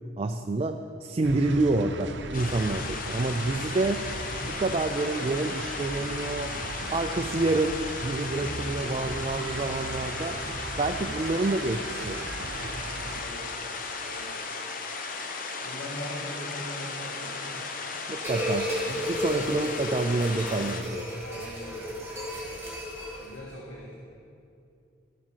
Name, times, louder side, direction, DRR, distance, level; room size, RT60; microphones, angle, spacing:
voice 1, 0.2-4.1 4.4-6.5 6.9-12.3 18.1-21.1, right 2 dB, 30° right, 6 dB, 0.4 m, -28 dB
Glitch Rock Loop, 1.2-13.2, right 2 dB, 65° right, 0.7 m, -38 dB
sound 1, 2.3-20.8, left 4 dB, 45° left, 1.0 m, -36 dB
voice 2, 2.7-3.2 8.7-9.3 13.0-13.6 14.0-14.4 14.9-15.3 15.6-17.6 19.4-19.6 21.2-21.9 23.2-24.0, equal, 75° left, -5 dB, 1.8 m, -42 dB
sound 2, 18.2-23.4, equal, 15° right, 2.6 m, -33 dB
13.0 x 9.7 x 5.7 m, 2.5 s
head